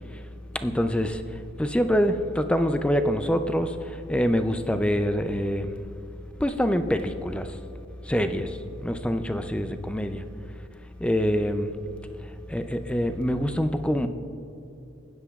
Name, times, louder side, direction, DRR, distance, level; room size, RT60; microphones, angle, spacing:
voice 1, 0.6-1.2 1.6-3.7 4.1-5.7 6.4-7.5 8.1-8.5 8.8-10.2 11.0-11.7 12.5-14.1, equal, 5° left, 8 dB, 0.4 m, -25 dB
15.5 x 10.0 x 2.4 m, 2.8 s
head